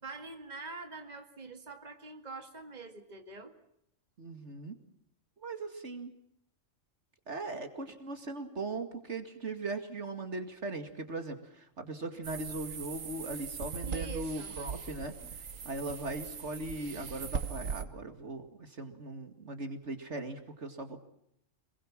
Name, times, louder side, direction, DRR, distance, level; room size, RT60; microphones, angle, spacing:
voice 1, 0.0-3.5 13.9-14.5, right 4 dB, 35° right, 5 dB, 2.2 m, -45 dB
voice 2, 4.2-4.8 5.4-6.1 7.3-21.0, right 2 dB, 60° right, 7 dB, 2.5 m, -39 dB
sound 1, 12.2-17.8, right 6 dB, 85° right, 1.6 m, -40 dB
27.5 x 21.5 x 7.5 m, 0.75 s
omnidirectional pair, 1.3 m